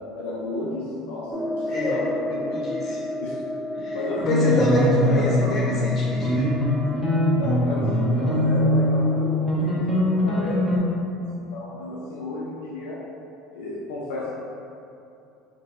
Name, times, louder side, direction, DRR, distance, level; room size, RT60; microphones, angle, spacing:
voice 1, 0.1-2.5 2.8-2.9 3.2-3.4 3.8-5.3 7.3-11.2 11.5-13.0 13.5-14.3, left 2 dB, 80° left, -6 dB, 0.5 m, -32 dB
sound 1, 1.3-10.8, left 1 dB, 25° right, 0.6 m, -34 dB
voice 2, 1.7-2.0 2.3-3.0 3.8-6.5, left 1 dB, 40° left, -6 dB, 1.2 m, -27 dB
sound 2, 4.2-10.8, left 1 dB, 5° right, 1.0 m, -22 dB
2.9 x 2.6 x 4.3 m, 2.7 s
hypercardioid pair, 85°, 0 cm